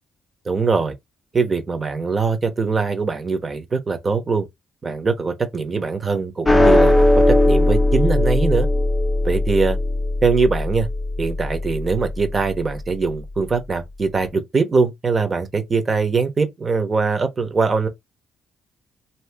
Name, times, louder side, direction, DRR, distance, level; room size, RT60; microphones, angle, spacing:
voice 1, 0.4-0.9 1.3-4.5 4.8-8.7 9.2-9.8 10.2-10.9 11.2-17.9, right 4 dB, 35° right, 1.0 m, -22 dB
sound 1, 6.5-13.0, left 1 dB, 15° left, 0.5 m, -19 dB
2.8 x 2.6 x 3.5 m
cardioid pair, 90°, 0 cm